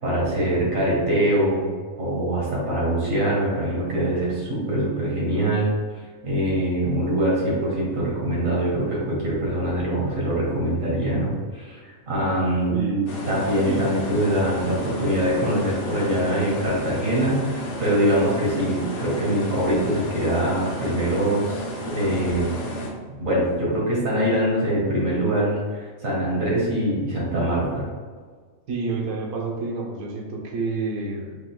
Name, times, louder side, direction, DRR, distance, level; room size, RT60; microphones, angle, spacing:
voice 1, 0.0-1.7 2.0-5.7 6.2-12.8 13.3-22.6 23.2-27.9, right 1 dB, 70° right, -5 dB, 2.0 m, -23 dB
voice 2, 12.7-13.2 13.6-13.8 28.7-31.4, right 3 dB, 90° right, -1 dB, 1.3 m, -28 dB
sound 1, 13.1-22.9, equal, 50° left, 0.8 m, -32 dB
5.3 x 3.8 x 2.2 m, 1.5 s
omnidirectional pair, 1.5 m